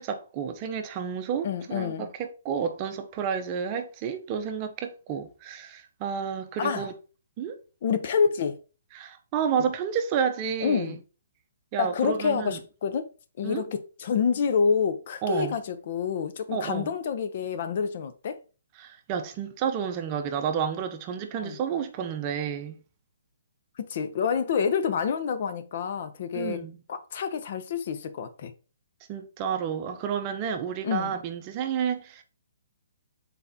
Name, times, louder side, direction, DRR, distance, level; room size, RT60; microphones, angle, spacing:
voice 1, 0.0-6.9 7.4-7.6 8.9-11.0 11.7-12.6 13.4-13.7 15.2-15.5 16.5-16.9 18.8-22.8 26.3-26.8 29.1-32.2, right 7 dB, 30° right, 0.6 m, -30 dB
voice 2, 1.4-2.1 6.6-6.9 7.8-8.6 10.6-10.9 11.8-13.1 13.4-18.4 21.4-21.6 23.8-26.6 26.9-28.5 30.8-31.1, left 6 dB, 50° left, 0.5 m, -27 dB
4.0 x 3.9 x 2.7 m
figure-of-eight pair, 135°, 0 cm